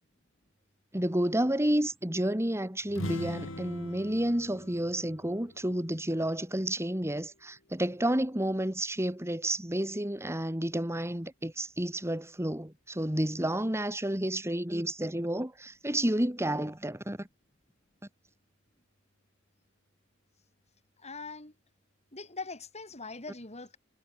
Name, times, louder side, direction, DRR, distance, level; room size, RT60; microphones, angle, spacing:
voice 1, 0.9-17.3, right 1 dB, 15° right, 3.1 m, -30 dB
sound 1, 2.9-6.6, left 1 dB, 90° left, 3.3 m, -41 dB
voice 2, 21.0-21.5 22.1-23.8, left 3 dB, 35° left, 6.1 m, -42 dB
head